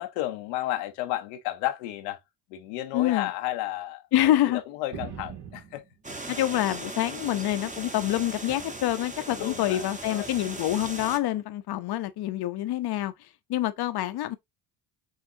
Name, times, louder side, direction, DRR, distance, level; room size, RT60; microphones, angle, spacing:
voice 1, 0.0-2.2 2.5-5.9 9.2-10.3, left 14 dB, 85° left, 0.8 m, -33 dB
voice 2, 2.9-3.3 4.1-4.6 6.3-13.1 13.5-14.4, left 13 dB, 50° left, 0.7 m, -26 dB
sound 1, 4.9-7.1 7.5-8.4 9.3-9.7 10.7-10.9, right 7 dB, 55° right, 1.7 m, -45 dB
sound 2, 6.0-11.2, right 2 dB, 15° right, 1.1 m, -38 dB
6.3 x 2.4 x 2.7 m
hypercardioid pair, 60°, 48 cm